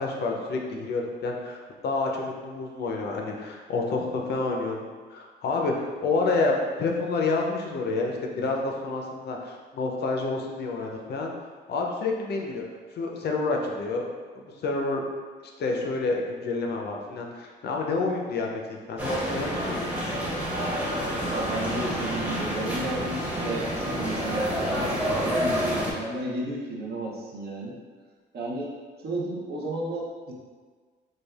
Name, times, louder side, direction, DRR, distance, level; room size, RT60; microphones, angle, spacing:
voice 1, 0.0-4.8 5.1-12.6 12.9-14.1 14.3-15.0 15.4-19.9, left 3 dB, 55° left, 1 dB, 0.5 m, -29 dB
sound 1, 19.0-25.9, equal, 10° right, 0.7 m, -28 dB
voice 2, 21.3-27.8 28.3-28.7 29.0-30.3, right 1 dB, 55° right, -2 dB, 0.6 m, -33 dB
3.2 x 2.3 x 2.3 m, 1.5 s
cardioid pair, 90°, 20 cm